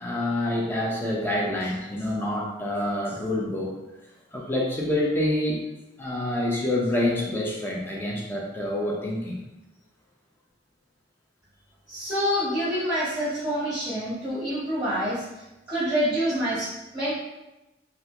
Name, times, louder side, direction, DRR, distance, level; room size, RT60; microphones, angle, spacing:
voice 1, 0.0-3.8 4.3-5.6 6.0-9.4, left 1 dB, 10° left, -3 dB, 0.5 m, -27 dB
voice 2, 11.9-15.2 15.7-17.1, equal, 20° right, -12 dB, 0.8 m, -27 dB
3.3 x 2.4 x 2.9 m, 1.0 s
head